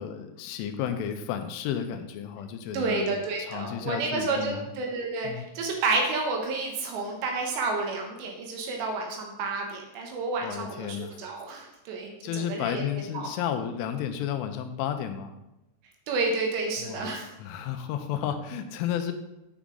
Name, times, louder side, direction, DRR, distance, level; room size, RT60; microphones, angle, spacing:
voice 1, 0.0-4.7 5.2-5.5 10.4-11.2 12.2-15.3 16.8-17.1 17.4-19.1, left 9 dB, 85° left, 7 dB, 3.2 m, -32 dB
voice 2, 2.7-13.3 16.1-17.2, right 3 dB, 75° right, 1 dB, 3.0 m, -30 dB
8.5 x 7.1 x 3.8 m, 0.93 s
omnidirectional pair, 5.6 m